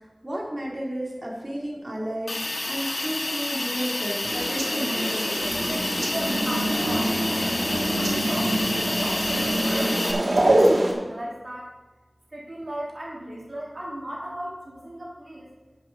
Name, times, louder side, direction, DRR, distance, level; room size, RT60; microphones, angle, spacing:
voice 1, 0.2-5.3, equal, 25° right, -4 dB, 2.5 m, -32 dB
Hiss, 2.3-10.1, left 2 dB, 80° left, 1.3 m, -29 dB
sound 1, 4.2-9.8, equal, 60° left, 2.2 m, -40 dB
sound 2, 4.2-10.9, right 1 dB, 85° right, 1.8 m, -25 dB
voice 2, 6.0-11.7 12.3-15.5, right 1 dB, 60° right, -4 dB, 2.4 m, -37 dB
7.8 x 7.7 x 6.0 m, 1.1 s
wide cardioid pair, 55°, 0 cm